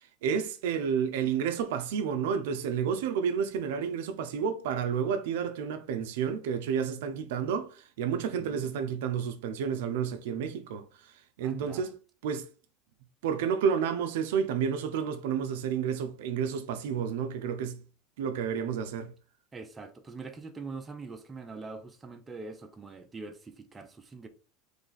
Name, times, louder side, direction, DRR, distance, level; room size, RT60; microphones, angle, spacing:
voice 1, 0.2-10.9 11.4-12.5 13.2-17.8 18.2-19.1, right 7 dB, 80° right, 0.5 m, -30 dB
voice 2, 8.1-8.7 11.4-11.9 19.5-24.3, right 3 dB, 15° right, 0.6 m, -43 dB
3.2 x 2.3 x 3.9 m
supercardioid pair, 125°, 0 cm